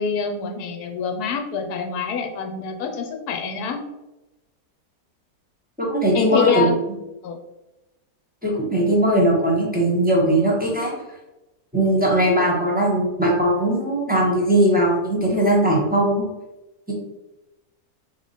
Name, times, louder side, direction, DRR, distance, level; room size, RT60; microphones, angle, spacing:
voice 1, 0.0-3.8 6.1-6.7 7.2-7.4, left 6 dB, 75° left, 4 dB, 1.1 m, -25 dB
voice 2, 5.8-6.7 8.4-10.9 11.7-16.2 16.9-17.0, right 1 dB, 5° right, -3 dB, 0.7 m, -19 dB
3.5 x 3.2 x 4.1 m, 1.0 s
omnidirectional pair, 1.8 m